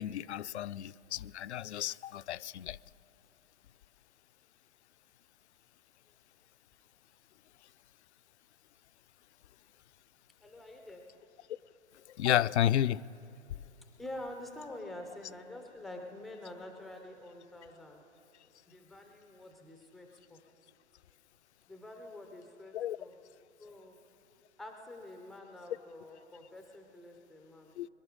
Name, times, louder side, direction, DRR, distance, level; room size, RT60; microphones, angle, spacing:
voice 1, 0.0-2.8 12.2-13.0 22.7-23.0 27.8-27.9, left 11 dB, 70° left, 0.5 m, -31 dB
voice 2, 10.4-11.0 14.0-18.0 18.7-20.4 21.7-23.1 23.6-24.0 24.6-27.7, left 1 dB, ahead, 0.3 m, -47 dB
23.5 x 11.0 x 5.1 m
hypercardioid pair, 130°, 35 cm